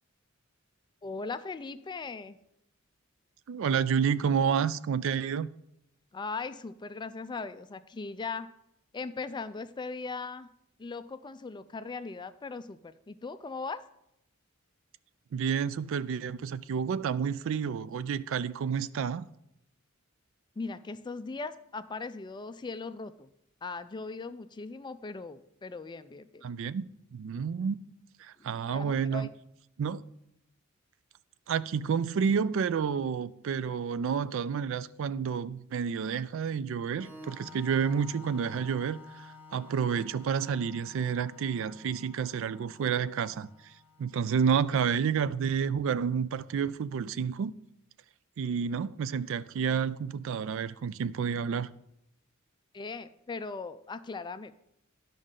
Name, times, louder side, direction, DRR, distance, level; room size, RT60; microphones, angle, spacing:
voice 1, 1.0-2.4 6.1-8.5 8.9-10.5 10.8-13.8 20.6-23.3 23.6-26.4 28.4-29.3 52.7-54.5, left 4 dB, 20° left, 0.3 m, -39 dB
voice 2, 3.5-5.5 15.3-19.3 26.4-26.8 27.1-27.8 28.2-29.3 29.8-30.0 31.5-43.7 44.0-47.5 48.4-51.7, right 7 dB, 65° right, 0.3 m, -30 dB
Organ, 36.9-44.4, left 3 dB, 10° right, 1.2 m, -51 dB
12.0 x 5.3 x 3.7 m
head